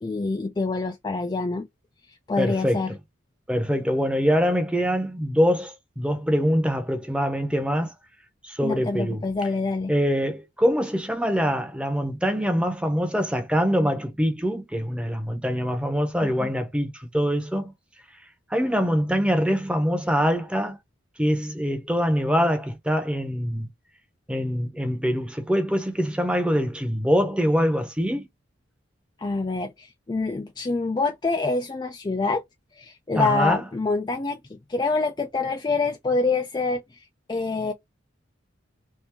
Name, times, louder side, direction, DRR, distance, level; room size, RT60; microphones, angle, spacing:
voice 1, 0.0-1.7 2.3-2.9 8.6-9.9 16.2-16.5 29.2-32.4 32.8-36.8 37.3-37.7, left 3 dB, 20° left, 0.3 m, -26 dB
voice 2, 2.4-3.0 3.5-7.9 8.4-9.2 9.9-17.7 18.5-20.8 21.2-23.7 24.3-28.3 33.2-33.6, equal, 5° right, 0.8 m, -24 dB
3.5 x 2.6 x 2.9 m
head